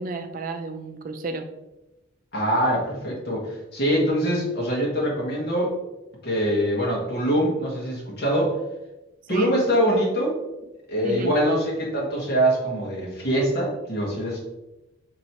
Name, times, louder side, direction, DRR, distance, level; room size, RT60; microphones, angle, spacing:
voice 1, 0.0-1.5 9.3-9.5 11.0-11.4, right 3 dB, 45° right, 7 dB, 0.4 m, -32 dB
voice 2, 2.3-5.7 6.2-8.5 9.3-10.3 10.9-14.4, equal, 55° left, -3 dB, 1.3 m, -23 dB
4.5 x 3.0 x 2.8 m, 0.97 s
head